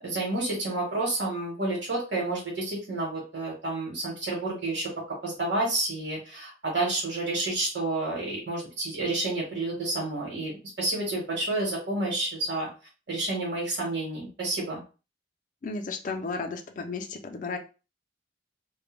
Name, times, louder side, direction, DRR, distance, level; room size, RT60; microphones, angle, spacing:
voice 1, 0.0-4.9 5.2-12.7 13.1-14.8, right 2 dB, 70° right, -3 dB, 1.0 m, -30 dB
voice 2, 15.6-17.6, left 4 dB, 45° left, 5 dB, 0.4 m, -33 dB
2.1 x 2.1 x 3.0 m, 0.33 s
head